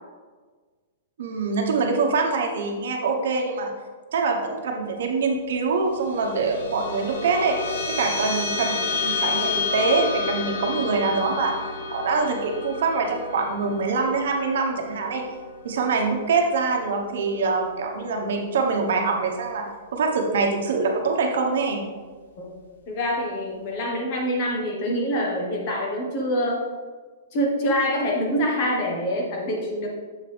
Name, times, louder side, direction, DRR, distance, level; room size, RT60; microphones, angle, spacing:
voice 1, 1.2-3.7 4.1-7.6 7.9-11.5 11.9-15.2 15.6-21.8, right 4 dB, 65° right, 2 dB, 1.0 m, -24 dB
sound 1, 5.9-16.6, left 4 dB, 90° left, 1.0 m, -30 dB
voice 2, 22.9-26.6 27.3-29.9, equal, 30° left, -1 dB, 1.1 m, -25 dB
7.3 x 5.1 x 3.3 m, 1.4 s
hypercardioid pair, 180°, 0 cm